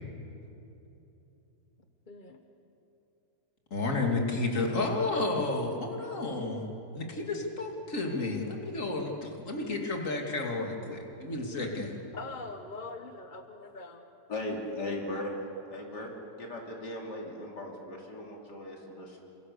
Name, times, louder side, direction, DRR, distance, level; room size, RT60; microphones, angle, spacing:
voice 1, 2.1-2.4 12.1-14.1, left 3 dB, 30° left, 5 dB, 1.3 m, -43 dB
voice 2, 3.7-12.0, left 2 dB, 50° left, 1 dB, 3.0 m, -31 dB
voice 3, 14.3-15.3 15.7-16.1 16.4-19.2, left 1 dB, 85° left, -1 dB, 3.5 m, -38 dB
29.0 x 26.5 x 6.9 m, 3.0 s
omnidirectional pair, 1.8 m